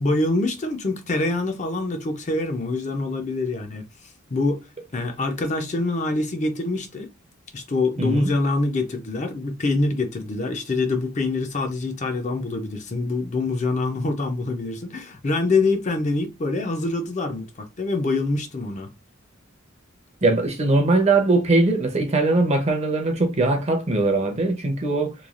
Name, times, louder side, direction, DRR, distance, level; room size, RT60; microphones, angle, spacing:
voice 1, 0.0-3.8 4.3-4.7 4.9-7.1 7.5-18.9, left 2 dB, 35° left, 0.5 m, -25 dB
voice 2, 8.0-8.3 20.2-25.1, right 2 dB, 30° right, 0.6 m, -21 dB
3.1 x 2.3 x 2.4 m
head